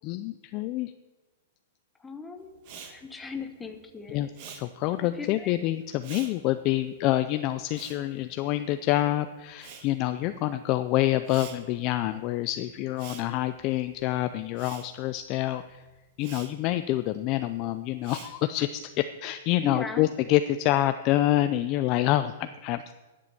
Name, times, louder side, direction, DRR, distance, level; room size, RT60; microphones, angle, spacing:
voice 1, 0.0-0.9 4.1-15.8 16.2-22.9, left 14 dB, 25° left, 11 dB, 0.3 m, -27 dB
voice 2, 2.0-4.3 5.0-5.5 19.6-20.1, left 4 dB, 5° left, 6 dB, 0.8 m, -38 dB
Respiratory sounds, 2.6-9.1 9.3-18.8, right 7 dB, 35° right, 1.3 m, -49 dB
11.0 x 7.6 x 7.1 m, 1.2 s
supercardioid pair, 175°, 0 cm